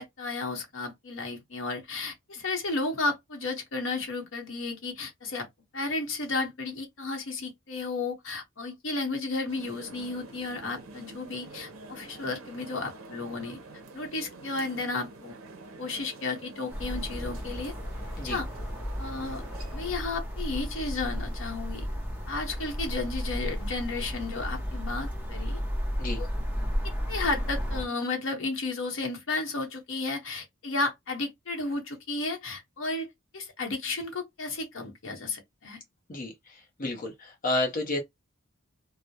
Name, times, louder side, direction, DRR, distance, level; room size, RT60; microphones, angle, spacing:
voice 1, 0.0-5.5 5.7-13.6 13.9-15.4 15.8-17.7 18.2-18.5 19.0-19.4 19.7-21.9 22.3-25.6 26.2-26.3 26.8-33.1 33.3-35.8, left 3 dB, 65° left, 0.8 m, -33 dB
sound 1, 9.5-19.9, right 2 dB, 80° right, 0.6 m, -47 dB
sound 2, 16.7-27.9, equal, 5° right, 0.6 m, -33 dB
voice 2, 36.8-38.0, left 2 dB, 40° left, 0.6 m, -30 dB
2.3 x 2.0 x 2.7 m
head